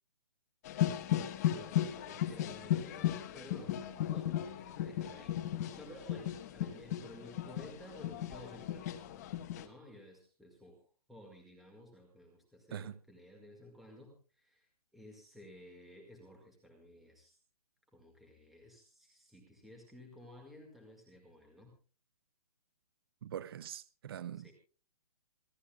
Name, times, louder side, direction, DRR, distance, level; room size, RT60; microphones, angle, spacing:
sound 1, 0.6-9.6, left 11 dB, 25° left, 1.2 m, -36 dB
voice 1, 1.1-3.8 4.1-9.0 9.6-17.4 17.9-21.7 24.3-24.5, left 1 dB, ahead, 2.0 m, -54 dB
voice 2, 23.2-24.5, right 10 dB, 35° right, 0.7 m, -43 dB
27.0 x 13.0 x 2.3 m
hypercardioid pair, 170°, 20 cm